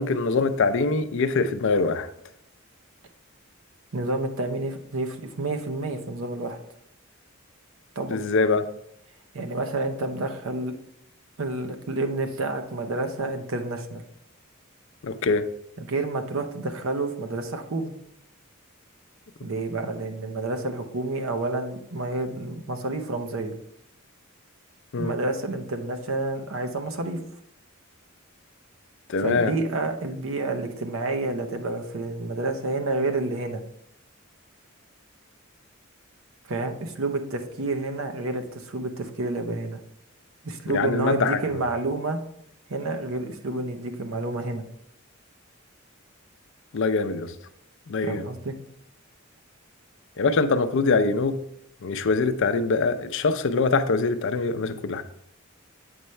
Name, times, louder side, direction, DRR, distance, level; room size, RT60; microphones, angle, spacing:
voice 1, 0.0-2.1 8.1-8.6 15.0-15.4 24.9-25.1 29.1-29.5 40.7-41.4 46.7-47.3 47.9-48.3 50.2-51.4 51.8-55.0, left 4 dB, 65° left, 10 dB, 0.5 m, -23 dB
voice 2, 3.9-6.6 8.0-8.2 9.3-10.8 11.4-14.0 15.8-17.9 19.4-23.5 25.0-27.2 29.2-33.6 36.5-39.8 40.4-42.2 42.7-44.6 48.0-48.5, right 2 dB, 70° right, 6 dB, 0.8 m, -29 dB
7.9 x 5.5 x 3.2 m, 0.76 s
head